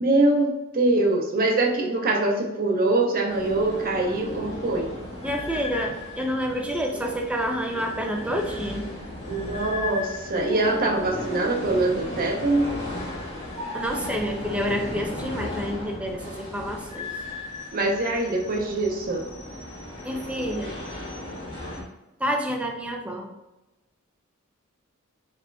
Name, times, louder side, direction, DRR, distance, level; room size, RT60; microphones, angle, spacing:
voice 1, 0.0-4.9 9.3-12.7 17.7-19.2, right 2 dB, 40° right, 1 dB, 0.8 m, -23 dB
sound 1, 3.3-21.8, left 2 dB, 25° left, 1.5 m, -35 dB
voice 2, 5.2-8.9 13.7-17.1 20.0-20.7 22.2-23.3, equal, 5° right, 2 dB, 0.5 m, -28 dB
4.7 x 4.2 x 2.3 m, 0.98 s
head